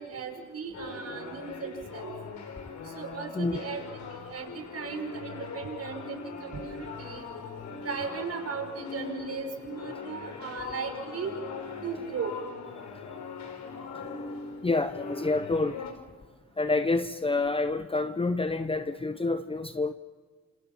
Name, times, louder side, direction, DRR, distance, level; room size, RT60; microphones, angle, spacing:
voice 1, 0.0-2.2 3.0-3.9 4.3-7.3 7.8-11.3 11.8-12.3, right 5 dB, 55° right, 5.8 m, -37 dB
sound 1, 0.7-15.9, left 5 dB, 70° left, 4.9 m, -40 dB
voice 2, 14.6-15.9 16.6-19.9, left 3 dB, 20° left, 1.0 m, -28 dB
28.0 x 27.0 x 5.7 m
cardioid pair, 90°, 30 cm